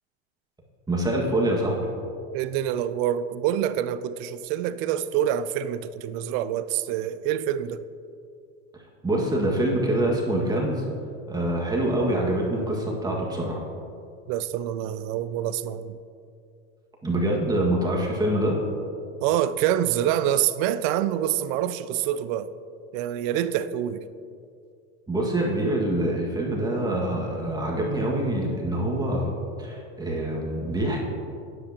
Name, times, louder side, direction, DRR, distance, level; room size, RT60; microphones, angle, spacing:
voice 1, 0.9-1.9 9.0-10.8 11.3-13.6 17.0-18.6 25.1-29.3 29.6-31.0, right 1 dB, 10° right, 1.8 m, -25 dB
voice 2, 2.3-7.8 14.3-16.0 19.2-22.5 22.9-24.0, right 11 dB, 55° right, 0.5 m, -26 dB
13.0 x 10.5 x 2.9 m
supercardioid pair, 110°, 32 cm